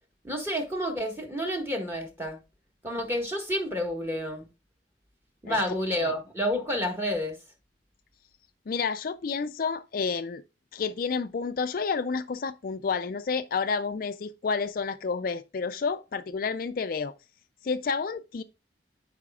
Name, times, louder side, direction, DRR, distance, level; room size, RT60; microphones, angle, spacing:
voice 1, 0.2-2.4 2.8-4.5 5.4-7.3, equal, 15° right, 1.5 m, -29 dB
voice 2, 8.7-10.4 10.7-17.1 17.6-18.4, left 5 dB, 50° left, 0.4 m, -30 dB
13.0 x 4.9 x 2.3 m
head